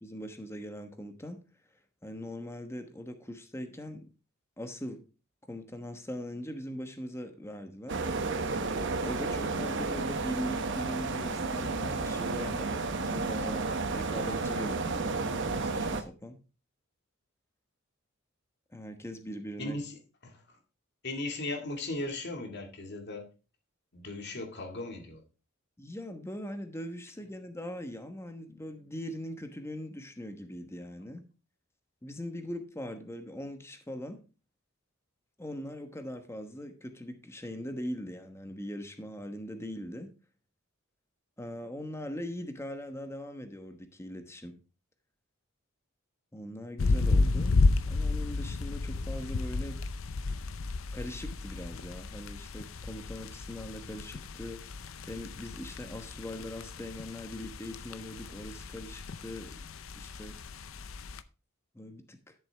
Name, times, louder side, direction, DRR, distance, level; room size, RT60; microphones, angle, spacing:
voice 1, 0.0-1.5 2.0-4.1 4.6-5.0 5.5-8.0 9.0-16.4 18.7-19.8 25.8-31.3 32.0-34.2 35.4-40.1 41.4-44.6 46.3-47.6 47.8-49.8 50.9-59.6 60.0-60.3 61.7-62.3, left 1 dB, 15° left, 1.1 m, -41 dB
sound 1, 7.9-16.0, right 3 dB, 60° right, 1.0 m, -32 dB
voice 2, 19.6-20.0 20.2-20.6 21.0-23.3 23.9-25.2, left 2 dB, 55° left, 2.0 m, -37 dB
sound 2, 46.8-61.2, left 3 dB, 75° left, 0.6 m, -32 dB
11.5 x 6.9 x 3.4 m
head